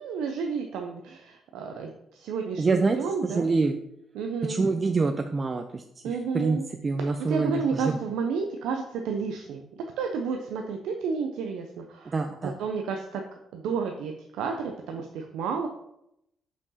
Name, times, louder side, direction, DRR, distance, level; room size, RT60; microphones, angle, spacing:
voice 1, 0.0-3.5 4.1-4.6 6.0-6.7 7.2-12.1 12.6-13.2 13.5-15.7, right 5 dB, 90° right, 3 dB, 0.6 m, -31 dB
voice 2, 2.6-3.0 3.2-3.8 4.5-8.0 12.1-12.5, right 4 dB, 35° right, 6 dB, 0.4 m, -26 dB
5.9 x 4.5 x 4.1 m, 0.79 s
cardioid pair, 90°, 0 cm